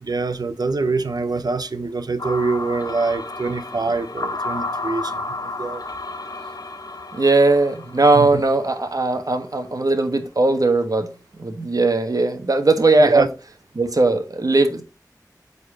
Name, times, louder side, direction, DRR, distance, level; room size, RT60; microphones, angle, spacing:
voice 1, 0.0-5.8 8.1-8.4 13.0-13.3, right 4 dB, 80° right, 0.7 m, -24 dB
sound 1, 2.2-9.3, left 2 dB, 70° left, 1.0 m, -32 dB
voice 2, 7.1-11.1 11.4-13.2 13.7-14.8, right 2 dB, 65° right, 1.3 m, -18 dB
8.7 x 4.2 x 4.0 m
wide cardioid pair, 50°, 7 cm